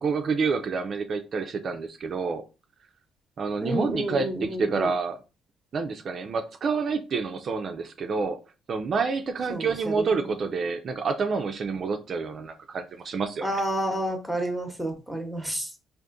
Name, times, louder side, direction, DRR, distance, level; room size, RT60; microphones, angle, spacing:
voice 1, 0.0-2.4 3.4-5.2 5.7-8.4 8.7-13.5, right 4 dB, 50° right, 5 dB, 0.3 m, -28 dB
voice 2, 3.6-4.9 9.5-10.3 13.4-15.8, right 1 dB, ahead, 4 dB, 0.8 m, -30 dB
3.5 x 2.5 x 2.5 m, 0.31 s
cardioid pair, 95°, 0 cm